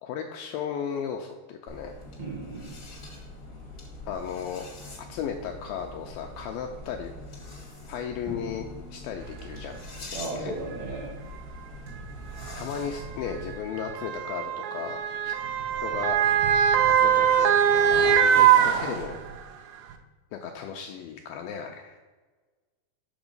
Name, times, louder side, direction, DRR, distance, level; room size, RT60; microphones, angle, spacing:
voice 1, 0.0-1.9 4.1-4.7 5.0-7.1 7.9-9.8 10.1-10.5 12.5-15.0 15.2-15.3 15.8-16.2 17.0-17.9 18.2-19.2 20.3-22.0, left 7 dB, 85° left, 4 dB, 2.1 m, -35 dB
sound 1, 1.7-13.6, left 2 dB, 65° left, 0.8 m, -43 dB
voice 2, 2.2-2.7 10.1-11.1, right 2 dB, 65° right, -1 dB, 1.7 m, -35 dB
Drum, 8.3-10.2, left 2 dB, 30° right, 0.5 m, -44 dB
Motor vehicle (road) / Siren, 9.5-9.6 10.6-10.8 11.9-19.5 19.9-20.0, right 8 dB, 90° right, 1.8 m, -22 dB
6.2 x 6.0 x 5.2 m, 1.3 s
omnidirectional pair, 4.6 m